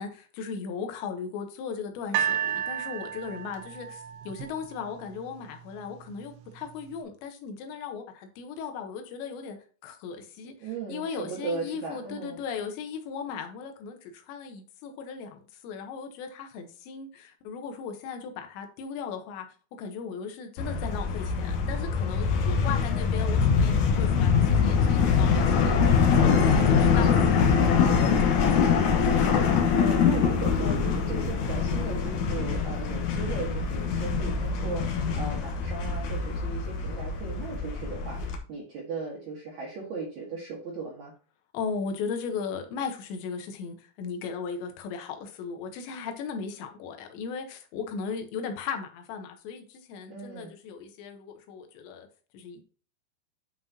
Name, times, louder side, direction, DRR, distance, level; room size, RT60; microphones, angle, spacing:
voice 1, 0.0-9.6 9.8-19.5 19.8-28.9 41.5-52.1 52.3-52.6, left 6 dB, 90° left, 5 dB, 3.3 m, -37 dB
sound 1, 2.1-5.3 6.1-6.2, right 10 dB, 80° right, 3.1 m, -32 dB
voice 2, 10.6-12.4 22.7-22.9 26.5-27.3 29.8-41.1 50.1-50.5, right 4 dB, 55° right, -3 dB, 2.2 m, -37 dB
sound 2, 20.6-38.4, left 6 dB, 70° left, 1.9 m, -24 dB
9.5 x 5.7 x 2.8 m, 0.39 s
omnidirectional pair, 5.0 m